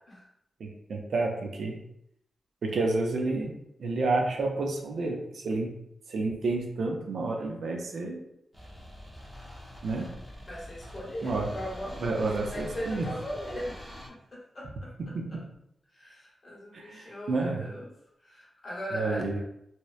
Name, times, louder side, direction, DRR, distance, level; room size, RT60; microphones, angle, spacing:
voice 1, 0.6-1.8 2.6-5.8 6.1-8.2 9.8-10.2 11.2-11.5 12.0-13.1 15.1-15.2 16.7-17.7 18.9-19.4, right 3 dB, 70° right, 1 dB, 0.4 m, -30 dB
sound 1, 8.5-14.1, equal, 10° right, 0.6 m, -44 dB
voice 2, 10.4-15.4 15.9-17.9 18.2-19.4, equal, 35° left, -5 dB, 0.9 m, -39 dB
2.8 x 2.0 x 2.3 m, 0.75 s
wide cardioid pair, 160°, 0 cm